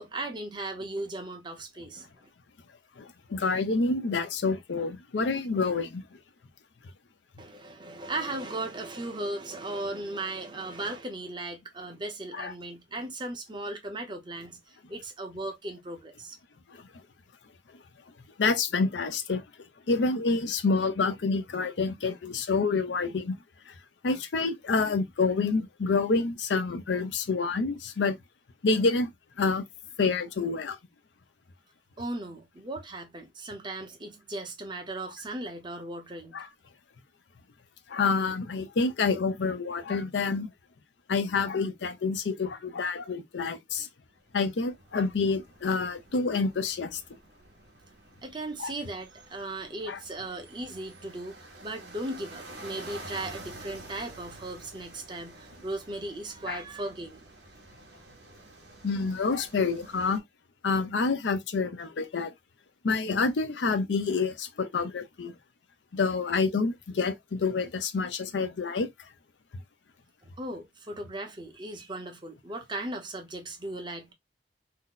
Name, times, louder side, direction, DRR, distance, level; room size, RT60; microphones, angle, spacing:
voice 1, 0.0-2.1 7.4-16.4 32.0-36.4 48.2-51.4 51.6-57.3 70.2-74.1, right 2 dB, 25° right, 0.8 m, -37 dB
voice 2, 3.0-6.1 12.3-12.5 16.7-16.8 18.4-19.4 19.9-23.4 23.7-23.8 24.0-28.2 28.6-29.1 29.4-29.6 30.0-30.8 36.3-36.5 37.9-40.5 41.1-43.9 44.3-47.0 48.6-48.7 49.9-50.0 56.4-56.6 58.8-60.2 60.6-62.3 62.8-65.3 65.9-69.1, left 4 dB, 85° left, 0.5 m, -28 dB
sound 1, 44.2-60.2, right 2 dB, 75° right, 0.9 m, -49 dB
2.8 x 2.1 x 3.8 m
head